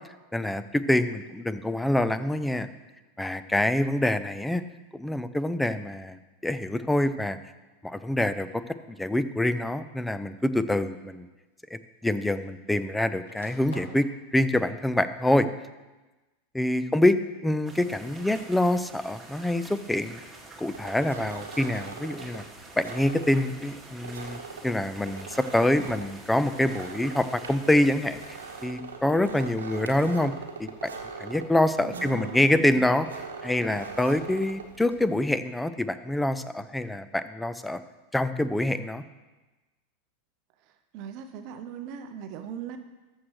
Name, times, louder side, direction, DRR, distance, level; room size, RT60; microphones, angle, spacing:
voice 1, 0.3-2.7 3.2-4.6 4.9-7.4 7.8-8.6 8.9-11.3 11.7-14.1 14.3-15.5 16.5-20.2 20.6-22.4 22.8-28.4 28.6-30.3 30.6-30.7 31.2-33.1 33.4-37.8 38.1-39.0, left 1 dB, 5° left, 13 dB, 0.5 m, -26 dB
sound 1, 8.4-8.7 9.7-9.8 11.3-11.4 11.6-12.7 13.0-14.1, left 2 dB, 80° left, 1.5 m, -49 dB
sound 2, 17.7-28.7, right 2 dB, 10° right, 2.0 m, -47 dB
sound 3, 20.7-35.1, right 4 dB, 85° right, 1.0 m, -42 dB
voice 2, 31.8-32.9 40.9-42.8, right 8 dB, 50° right, 7 dB, 0.6 m, -40 dB
14.0 x 6.4 x 3.2 m, 1.2 s
hypercardioid pair, 90°, 0 cm